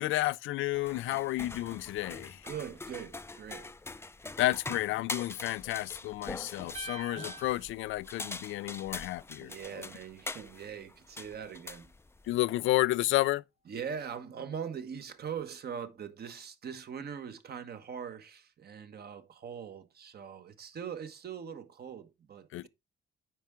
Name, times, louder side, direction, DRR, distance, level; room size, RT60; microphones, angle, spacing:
voice 1, 0.0-2.4 4.4-9.5 12.3-13.4 22.5-22.7, left 17 dB, 80° left, 0.4 m, -31 dB
Dog is walking up the stairs, 0.7-12.4, left 3 dB, 10° left, 0.5 m, -43 dB
voice 2, 2.4-3.7 6.4-6.5 9.4-11.9 13.7-22.7, right 7 dB, 55° right, 1.2 m, -42 dB
sound 1, 6.7-9.0, right 5 dB, 30° right, 1.0 m, -47 dB
9.2 x 4.6 x 3.6 m
cardioid pair, 90°, 20 cm